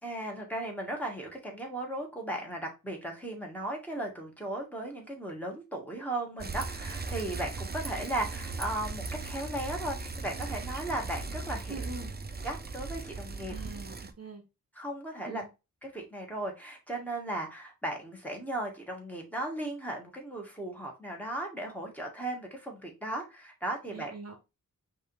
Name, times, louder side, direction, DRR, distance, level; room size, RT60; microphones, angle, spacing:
voice 1, 0.0-11.8 12.4-13.5 14.8-15.4 15.8-24.1, right 1 dB, 5° left, 1.6 m, -36 dB
Bicycle, 6.4-14.1, right 3 dB, 30° right, 0.5 m, -38 dB
voice 2, 11.7-12.1 13.5-14.4 15.3-15.5 23.9-24.4, right 4 dB, 45° right, 0.9 m, -43 dB
5.3 x 2.8 x 3.2 m
wide cardioid pair, 60°, 35 cm